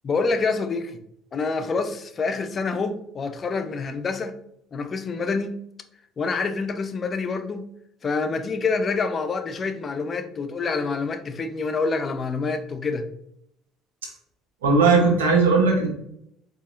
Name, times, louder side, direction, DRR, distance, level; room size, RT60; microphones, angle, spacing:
voice 1, 0.0-1.0 1.3-4.3 4.7-5.6 6.2-7.7 8.0-13.1, left 4 dB, 40° left, 9 dB, 0.4 m, -27 dB
voice 2, 14.6-15.9, right 4 dB, 90° right, 1 dB, 0.9 m, -18 dB
4.0 x 2.8 x 2.5 m, 0.73 s
hypercardioid pair, 65°, 0 cm